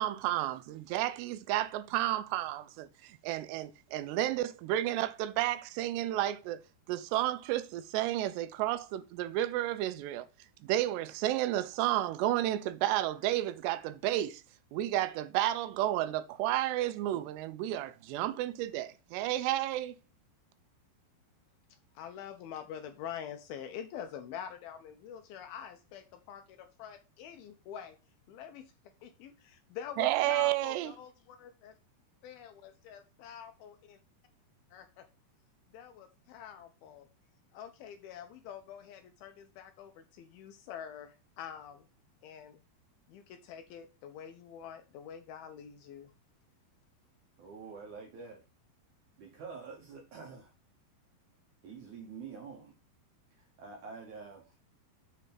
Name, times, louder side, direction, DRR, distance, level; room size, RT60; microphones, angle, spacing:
voice 1, 0.0-6.6 6.9-10.3 10.6-14.4 14.7-19.9 30.0-30.9, right 14 dB, 90° right, 2.8 m, -31 dB
voice 2, 22.0-28.0 28.3-28.7 29.0-31.1 31.4-31.7 32.2-34.0 34.7-35.1 35.7-37.1 37.5-41.9 42.2-42.6 43.1-46.1, left 9 dB, 80° left, 2.3 m, -46 dB
voice 3, 47.4-48.4 49.2-50.5 51.6-52.8 53.3-54.5, right 5 dB, 75° right, 1.8 m, -47 dB
7.4 x 3.3 x 5.8 m
omnidirectional pair, 4.8 m